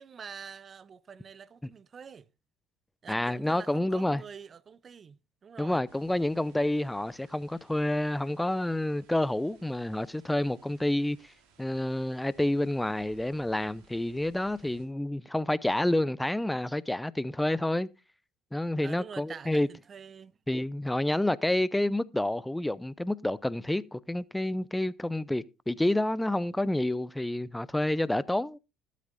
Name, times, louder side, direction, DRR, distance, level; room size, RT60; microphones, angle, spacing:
voice 1, 0.0-2.3 3.0-5.8 18.8-20.3, right 6 dB, 35° right, 0.6 m, -46 dB
voice 2, 3.1-4.2 5.6-11.3 11.6-17.9 18.5-19.7 20.5-28.6, left 1 dB, 5° left, 0.6 m, -29 dB
sound 1, 5.9-14.9, right 5 dB, 70° right, 3.4 m, -62 dB
20.5 x 8.3 x 2.6 m
hypercardioid pair, 70°, 0 cm